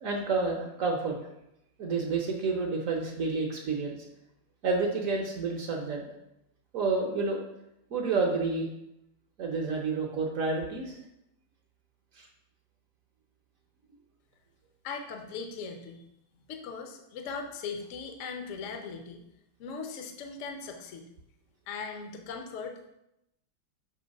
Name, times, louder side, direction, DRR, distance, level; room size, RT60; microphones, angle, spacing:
voice 1, 0.0-1.2 1.8-4.0 4.6-6.1 6.7-7.4 7.9-8.7 9.4-10.9 12.2-12.3, right 4 dB, 55° right, 1 dB, 1.0 m, -29 dB
voice 2, 14.8-16.0 16.5-19.2 19.6-21.1 21.7-22.9, left 5 dB, 60° left, 4 dB, 0.8 m, -39 dB
6.3 x 3.1 x 5.2 m, 0.83 s
omnidirectional pair, 2.1 m